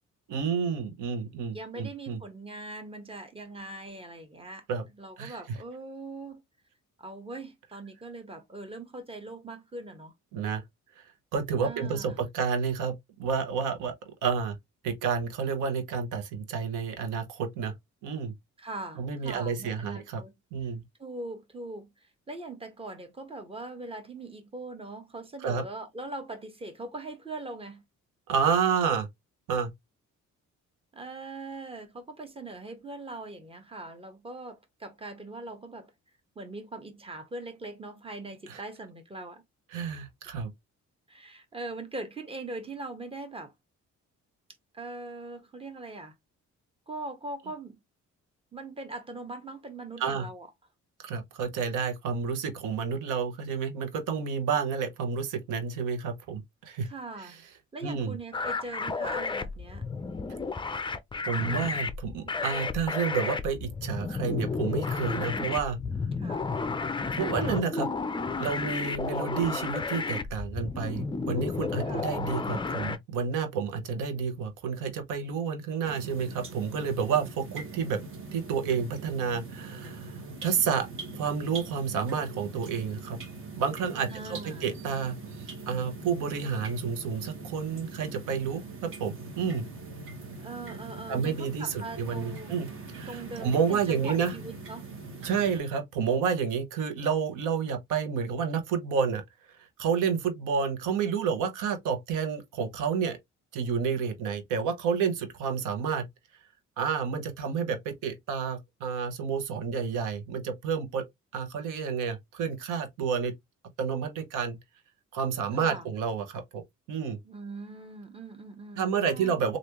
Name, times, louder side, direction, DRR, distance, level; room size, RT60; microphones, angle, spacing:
voice 1, 0.3-2.2 4.7-4.8 5.2-5.4 10.3-10.6 11.0-11.1 11.3-13.9 14.2-14.6 14.8-17.7 18.0-18.3 19.0-20.2 20.5-20.8 25.4-25.6 28.3-29.1 29.5-29.7 38.5-38.6 39.7-40.5 50.0-50.3 51.0-56.9 57.2-57.3 57.8-58.2 61.3-65.8 67.1-67.9 68.4-78.0 78.3-83.2 83.6-89.6 91.1-92.7 92.9-94.3 95.2-99.2 99.6-103.2 103.5-106.1 106.8-111.1 111.3-113.3 113.8-114.6 115.1-116.6 116.9-117.2 118.8-119.6, right 6 dB, 90° right, 0.9 m, -30 dB
voice 2, 1.5-4.7 5.0-6.4 7.0-10.1 11.6-12.2 18.6-20.3 20.6-20.7 21.0-27.8 30.9-35.9 36.3-39.4 39.7-39.9 41.1-43.5 44.7-46.1 46.9-47.8 48.5-50.5 56.8-57.4 57.7-59.9 66.2-66.5 71.9-72.2 84.1-84.7 90.4-92.6 93.1-94.9 115.5-115.9 117.2-119.6, right 2 dB, 20° right, 1.1 m, -41 dB
sound 1, 58.3-73.0, left 4 dB, 15° left, 0.4 m, -32 dB
sound 2, 75.8-95.6, right 3 dB, 45° right, 1.2 m, -42 dB
3.3 x 2.5 x 2.9 m
cardioid pair, 90°, 30 cm